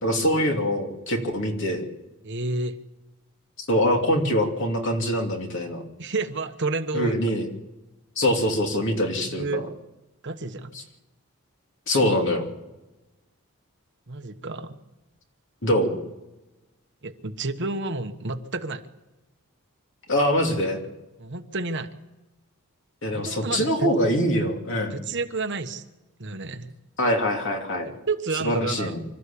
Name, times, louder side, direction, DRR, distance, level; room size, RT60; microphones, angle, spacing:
voice 1, 0.0-1.8 3.6-5.8 6.9-7.5 8.2-9.6 11.9-12.5 15.6-16.0 20.1-20.8 23.0-25.0 27.0-27.9 28.4-29.0, equal, 55° left, 2 dB, 2.9 m, -24 dB
voice 2, 2.2-2.8 6.0-7.2 9.2-9.6 10.2-10.8 14.1-14.7 17.0-18.8 21.2-21.9 23.1-23.9 24.9-25.8 26.2-26.7 27.8-29.0, right 3 dB, 55° right, 7 dB, 1.2 m, -30 dB
26.0 x 13.0 x 8.6 m, 1.1 s
head